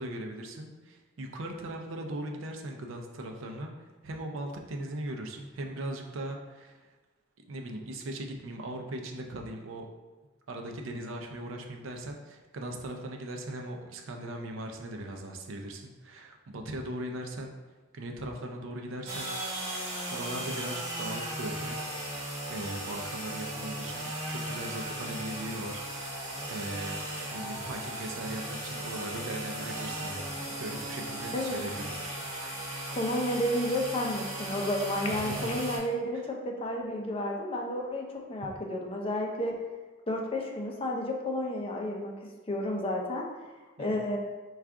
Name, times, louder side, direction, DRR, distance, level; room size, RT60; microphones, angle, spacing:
voice 1, 0.0-6.9 7.5-9.9 10.5-17.5 17.9-19.3 19.6-19.7 20.1-21.8 22.2-26.2 26.5-27.0 27.3-31.9 35.2-35.5 36.1-36.2 43.8-44.0, right 1 dB, 70° right, 3 dB, 0.5 m, -39 dB
sound 1, 19.1-35.8, right 1 dB, 35° right, 1.0 m, -37 dB
sound 2, 28.9-35.7, left 2 dB, 90° left, 0.5 m, -48 dB
voice 2, 33.0-39.5 40.1-43.3 43.8-44.2, left 1 dB, 30° left, 0 dB, 0.5 m, -31 dB
4.5 x 2.4 x 3.6 m, 1.2 s
head